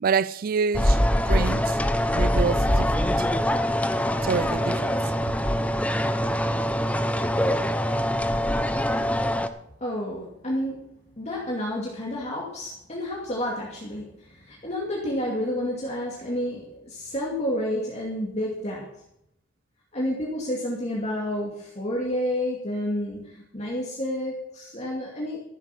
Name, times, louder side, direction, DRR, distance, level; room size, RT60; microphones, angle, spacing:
voice 1, 0.0-1.0 1.3-1.8 2.1-3.3 4.2-5.0, right 5 dB, 50° right, 0.4 m, -27 dB
sound 1, 0.7-9.5, equal, 5° left, 0.7 m, -23 dB
voice 2, 9.8-19.0 19.9-25.4, left 1 dB, 35° left, 2.5 m, -30 dB
14.5 x 8.2 x 6.0 m
head